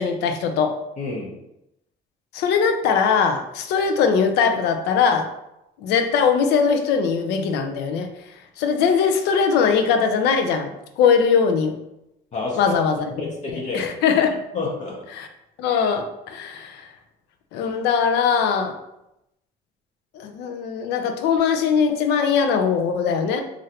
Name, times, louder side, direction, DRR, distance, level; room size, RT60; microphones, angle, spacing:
voice 1, 0.0-0.8 2.3-5.3 5.8-8.1 8.6-11.8 12.6-13.1 13.5-14.4 15.1-15.3 15.6-16.9 17.5-18.8 20.1-23.4, left 6 dB, 85° left, 6 dB, 0.5 m, -21 dB
voice 2, 1.0-1.4 12.3-12.7 13.1-13.9 14.5-15.0, left 3 dB, 45° left, -3 dB, 0.6 m, -29 dB
3.1 x 2.5 x 2.8 m, 0.85 s
cardioid pair, 110°, 17 cm